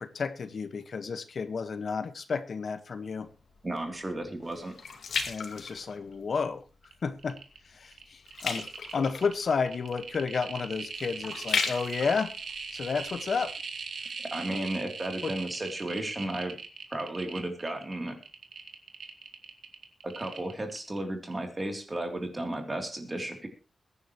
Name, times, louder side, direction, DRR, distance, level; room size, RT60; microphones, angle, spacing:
voice 1, 0.0-3.3 5.3-6.6 7.0-7.4 7.7-12.3 12.7-13.6 14.5-14.7 15.2-15.3, left 5 dB, 55° left, 10 dB, 1.5 m, -32 dB
sound 1, 3.3-6.5 6.9-7.3 7.6-13.5 14.0-14.1, left 5 dB, 80° left, 2.4 m, -36 dB
voice 2, 3.6-4.7 14.3-16.6 16.9-18.2 20.0-23.5, right 1 dB, 20° right, 4 dB, 3.3 m, -34 dB
sound 2, 6.8-6.9 7.2-7.6 7.9-21.0 21.3-21.4, right 5 dB, 70° right, 3.0 m, -40 dB
23.0 x 10.0 x 3.2 m, 0.34 s
wide cardioid pair, 180°, 0 cm